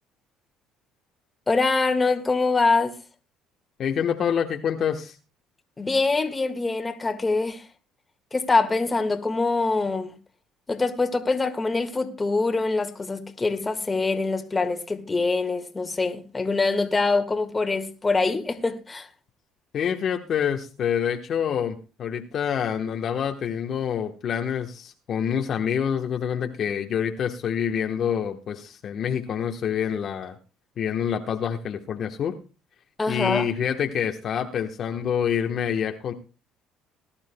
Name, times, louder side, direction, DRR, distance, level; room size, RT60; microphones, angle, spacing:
voice 1, 1.5-3.0 5.8-7.7 8.3-10.2 10.7-19.1 33.0-33.5, left 3 dB, 20° left, 1.7 m, -24 dB
voice 2, 3.8-5.2 19.7-30.4 30.8-32.4 33.1-36.1, left 8 dB, 55° left, 1.1 m, -27 dB
20.0 x 12.0 x 2.2 m
supercardioid pair, 95°, 0 cm